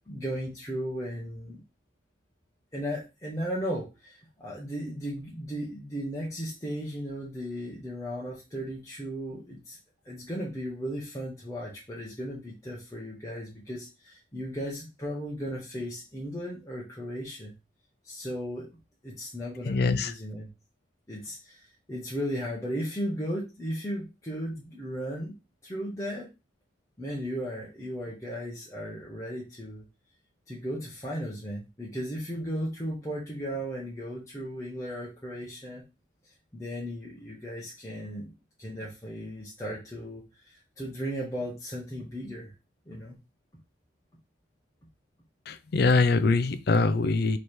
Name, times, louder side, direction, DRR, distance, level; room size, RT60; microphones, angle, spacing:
voice 1, 0.1-1.6 2.7-9.8 10.0-17.5 18.0-18.7 19.0-20.5 21.1-25.3 25.6-26.3 27.0-29.8 30.5-35.8 36.5-38.3 38.6-42.5 42.9-43.2, equal, 15° left, 0.9 m, -36 dB
voice 2, 19.6-20.1 45.5-47.4, left 3 dB, 55° left, 0.4 m, -23 dB
3.2 x 3.2 x 4.3 m
head